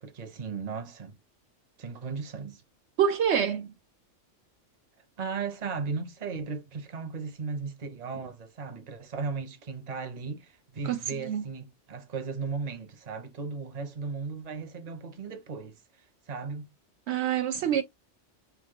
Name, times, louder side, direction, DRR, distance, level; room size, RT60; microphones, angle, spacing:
voice 1, 0.0-1.1 1.8-2.6 5.2-15.8 16.3-16.7 17.5-17.7, right 5 dB, 40° right, 0.8 m, -36 dB
voice 2, 3.0-3.7 10.8-11.0 11.3-11.4 17.1-17.8, right 8 dB, 70° right, 0.8 m, -26 dB
3.1 x 2.9 x 3.7 m
omnidirectional pair, 1.3 m